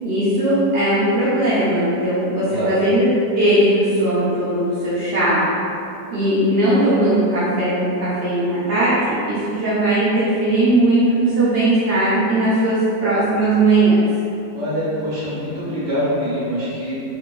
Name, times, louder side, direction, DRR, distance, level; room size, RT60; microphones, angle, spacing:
voice 1, 0.0-3.1 3.3-5.5 6.1-14.0, right 1 dB, 70° right, -10 dB, 0.5 m, -18 dB
voice 2, 2.5-2.8 14.5-17.0, equal, 35° right, -10 dB, 0.8 m, -24 dB
3.5 x 2.5 x 3.1 m, 2.7 s
omnidirectional pair, 1.9 m